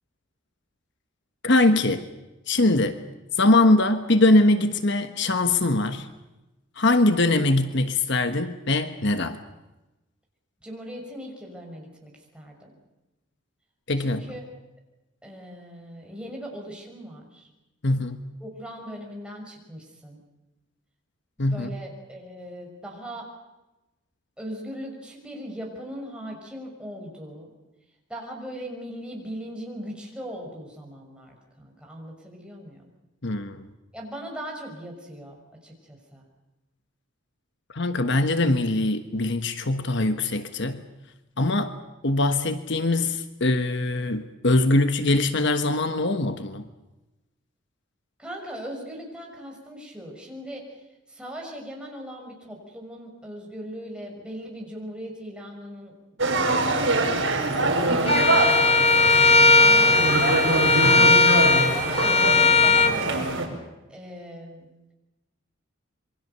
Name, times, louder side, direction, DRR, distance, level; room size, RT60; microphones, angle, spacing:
voice 1, 1.4-2.1 2.5-3.0 3.3-6.1 6.8-9.4 13.9-14.2 17.8-18.2 21.4-21.8 33.2-33.6 37.7-40.8 41.4-41.8 42.0-46.7 60.8-61.2, left 2 dB, 60° left, 9 dB, 1.3 m, -22 dB
voice 2, 10.6-12.7 14.0-14.5 15.2-17.5 18.4-20.2 21.4-23.3 24.4-27.5 28.1-32.8 33.9-35.4 35.6-36.2 48.2-50.8 51.1-55.9 56.2-57.3 57.6-58.1 59.6-60.4 61.7-63.3 63.9-64.7, equal, 5° right, -1 dB, 6.2 m, -39 dB
sound 1, 56.2-63.5, right 2 dB, 65° right, 5.3 m, -24 dB
Bowed string instrument, 58.1-62.9, left 3 dB, 30° left, 1.7 m, -18 dB
27.5 x 23.5 x 6.9 m, 1.0 s
head